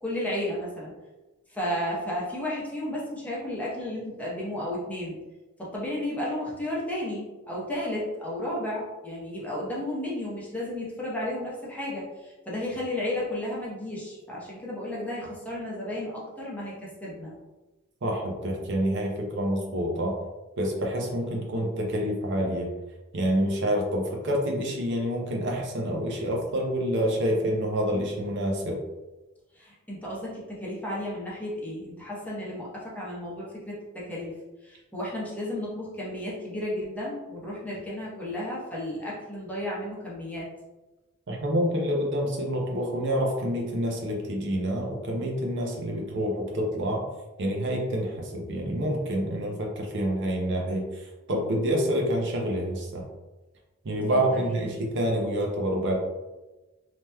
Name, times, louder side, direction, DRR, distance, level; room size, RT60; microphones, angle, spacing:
voice 1, 0.0-0.9 1.5-5.2 5.6-17.3 29.5-34.3 34.6-40.5 54.1-54.7, left 1 dB, 5° left, -6 dB, 0.7 m, -33 dB
voice 2, 18.0-20.1 20.6-22.7 23.1-28.8 41.3-47.0 47.4-53.0 53.8-56.0, equal, 55° right, 0 dB, 0.6 m, -27 dB
3.3 x 2.8 x 2.2 m, 1.1 s
head